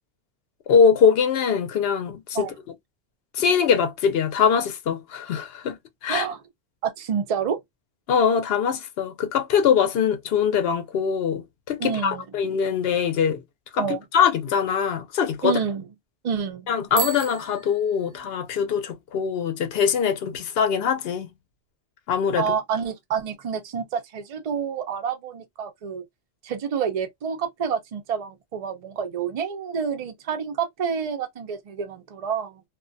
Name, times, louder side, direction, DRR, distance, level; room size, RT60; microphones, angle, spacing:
voice 1, 0.7-2.5 3.3-6.3 8.1-13.4 13.7-13.9 14.1-15.6 16.7-21.3 22.1-22.5, left 7 dB, 70° left, 0.8 m, -22 dB
voice 2, 6.1-6.4 6.8-7.6 11.8-12.3 13.8-14.0 15.4-15.8 16.2-16.7 22.4-26.0 26.4-32.6, right 7 dB, 45° right, 0.5 m, -28 dB
Bicycle bell, 16.9-18.6, right 11 dB, 85° right, 0.9 m, -34 dB
2.4 x 2.1 x 2.5 m
omnidirectional pair, 1.1 m